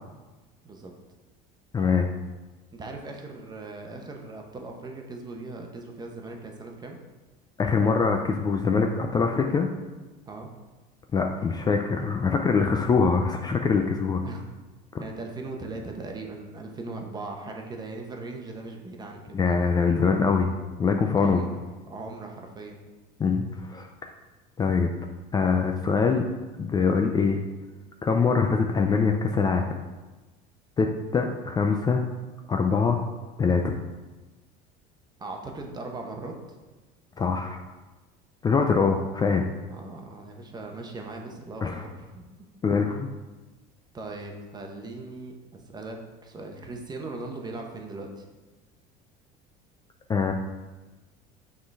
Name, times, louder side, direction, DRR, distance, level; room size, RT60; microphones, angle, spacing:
voice 1, 1.7-2.1 7.6-9.7 11.1-14.2 19.3-20.5 20.8-21.4 23.2-23.9 24.6-24.9 25.3-26.2 26.6-27.4 28.0-29.6 30.8-30.9 31.1-32.0 32.5-33.0 33.4-33.7 37.2-37.6 38.4-39.4 41.6-41.9 42.6-43.1 50.1-50.3, left 5 dB, 20° left, 4 dB, 0.4 m, -23 dB
voice 2, 2.7-7.0 10.3-10.5 14.2-14.5 15.0-19.4 21.2-21.5 21.9-22.8 35.2-36.6 39.7-42.3 43.9-48.2, right 3 dB, 20° right, 2 dB, 1.0 m, -39 dB
6.3 x 3.8 x 4.7 m, 1.2 s
supercardioid pair, 120°, 18 cm